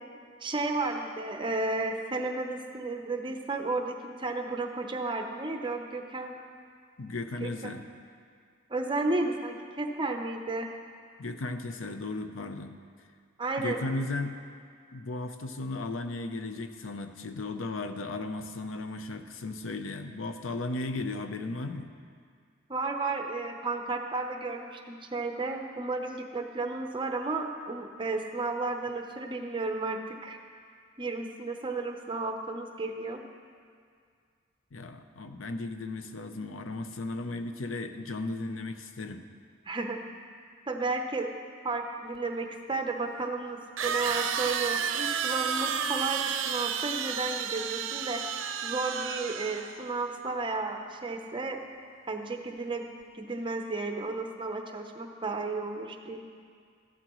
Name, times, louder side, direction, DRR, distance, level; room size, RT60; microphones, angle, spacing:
voice 1, 0.4-6.4 7.4-7.7 8.7-10.7 13.4-13.8 22.7-30.4 31.0-33.2 39.6-40.0 40.7-41.3 41.6-48.2 48.6-51.6 52.1-52.9 53.1-56.3, right 3 dB, 25° right, 4 dB, 0.7 m, -33 dB
voice 2, 7.0-7.9 11.2-12.8 13.6-14.4 14.9-21.9 34.7-39.3, left 2 dB, 80° left, 8 dB, 0.6 m, -35 dB
sound 1, 42.1-42.2 43.8-49.9, right 7 dB, 70° right, 0.6 m, -31 dB
14.0 x 11.5 x 3.1 m, 2.1 s
head